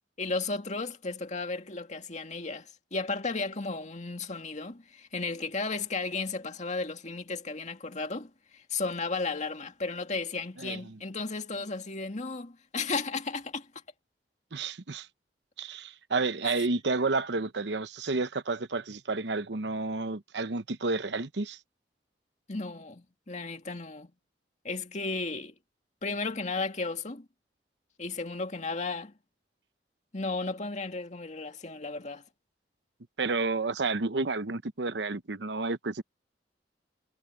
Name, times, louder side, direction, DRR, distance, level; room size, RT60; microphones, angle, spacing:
voice 1, 0.2-13.7 16.4-16.7 22.5-24.1 24.6-25.5 26.0-27.3 28.0-29.1 30.1-32.2, left 3 dB, 45° left, 2.2 m, -34 dB
voice 2, 10.6-11.0 14.5-15.1 15.6-21.6 33.2-36.0, right 3 dB, 80° right, 0.9 m, -31 dB
head